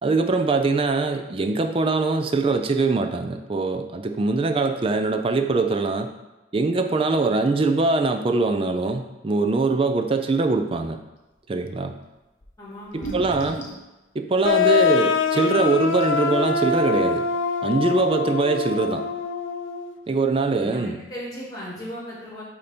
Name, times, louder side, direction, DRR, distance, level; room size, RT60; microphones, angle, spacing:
voice 1, 0.0-6.1 6.5-11.0 11.5-12.0 12.9-13.6 14.1-17.3 17.6-19.1 20.1-21.0, right 3 dB, 30° right, 6 dB, 0.4 m, -22 dB
sound 1, 12.4-12.5 12.9-13.9 14.9-15.0 15.6-15.7 15.9-16.3, right 1 dB, 40° left, 0.9 m, -35 dB
voice 2, 12.6-13.1 20.6-22.4, equal, 20° left, -6 dB, 1.8 m, -36 dB
sound 2, 14.4-19.9, left 5 dB, 85° left, 0.5 m, -24 dB
8.2 x 2.8 x 4.3 m, 1.1 s
head